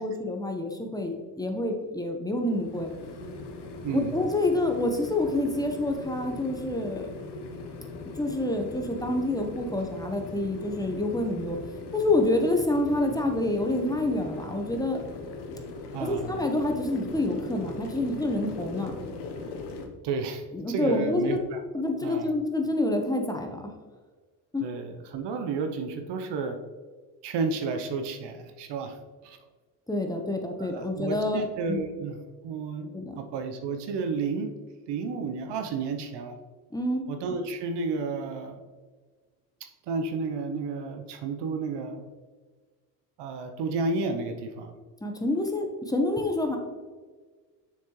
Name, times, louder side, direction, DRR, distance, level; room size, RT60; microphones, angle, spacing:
voice 1, 0.0-2.9 4.1-7.1 8.2-11.6 11.9-15.0 16.0-18.9 20.5-21.4 21.7-23.6 24.5-24.7 29.9-31.4 31.7-31.8 32.9-33.1 36.7-37.0 45.0-46.6, left 2 dB, 10° left, 3 dB, 1.1 m, -27 dB
sound 1, 2.4-19.9, left 3 dB, 60° left, 1.2 m, -40 dB
voice 2, 3.8-4.1 15.9-16.4 20.0-21.6 22.0-22.3 24.6-26.6 27.2-29.0 29.2-29.4 30.6-34.6 34.9-36.4 37.1-38.6 39.9-42.1 43.2-44.7, right 4 dB, 60° right, 6 dB, 0.9 m, -32 dB
6.7 x 6.2 x 3.2 m, 1.4 s
hypercardioid pair, 65°, 46 cm